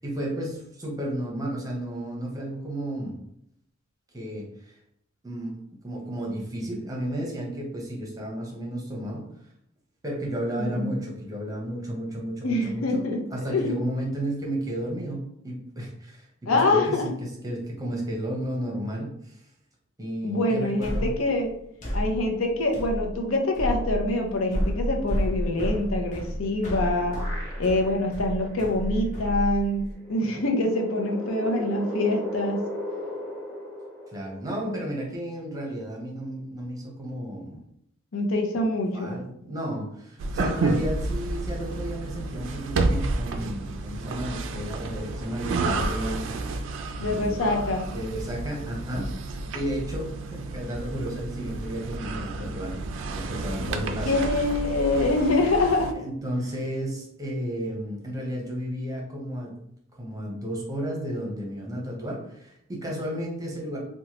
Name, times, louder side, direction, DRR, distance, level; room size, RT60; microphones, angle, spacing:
voice 1, 0.0-3.2 4.1-4.8 5.2-5.5 5.8-9.2 10.0-13.1 13.3-19.4 20.0-21.1 34.1-37.6 38.9-46.3 46.6-46.7 47.0-47.5 47.9-54.1 55.9-59.5 60.0-63.8, equal, 20° right, -2 dB, 0.7 m, -33 dB
voice 2, 10.6-10.9 12.4-13.7 16.5-17.1 20.2-21.5 21.9-27.2 27.6-32.6 38.1-39.2 47.0-47.9 54.0-56.0, left 2 dB, 85° left, 2 dB, 0.6 m, -25 dB
sound 1, 20.8-29.9, equal, 40° left, 0.6 m, -31 dB
sound 2, 26.5-28.1 28.5-28.6 29.9-34.7, left 1 dB, 10° left, 1.3 m, -36 dB
sound 3, 40.2-55.9, right 3 dB, 65° right, 0.3 m, -30 dB
2.9 x 2.2 x 2.9 m, 0.75 s
head